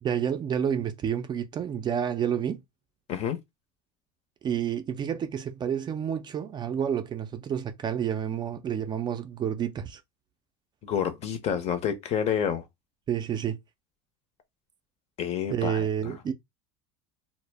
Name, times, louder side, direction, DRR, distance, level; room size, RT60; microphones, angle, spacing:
voice 1, 0.0-2.6 4.4-10.0 13.1-13.6 15.5-16.3, right 8 dB, 30° right, 0.4 m, -29 dB
voice 2, 10.8-12.7 15.2-16.1, left 8 dB, 45° left, 0.7 m, -29 dB
2.0 x 2.0 x 3.3 m
supercardioid pair, 105°, 15 cm